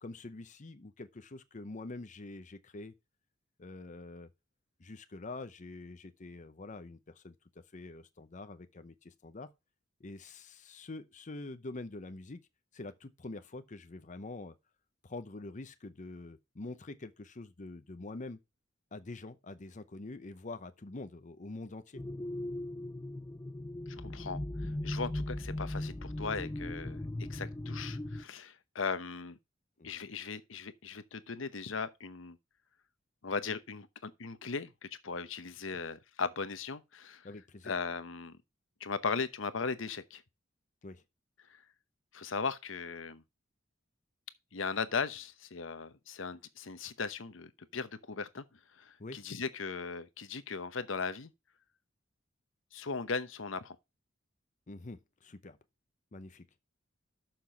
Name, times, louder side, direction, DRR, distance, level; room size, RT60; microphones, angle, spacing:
voice 1, 0.0-2.9 3.6-4.3 4.8-7.3 7.7-9.5 10.0-12.4 12.7-14.5 15.0-18.4 18.9-22.0 29.8-29.9 37.2-37.7 40.8-41.0 49.0-49.2 54.7-55.6 56.1-56.4, left 2 dB, 40° left, 0.8 m, -45 dB
sound 1, 22.0-28.2, left 1 dB, 15° left, 0.4 m, -38 dB
voice 2, 23.9-27.0 27.3-29.4 29.8-32.4 33.2-37.3 37.6-38.4 38.8-40.2 41.5-41.6 42.1-43.2 44.5-51.3 52.7-53.8, left 5 dB, 80° left, 0.9 m, -38 dB
6.8 x 5.9 x 5.6 m
head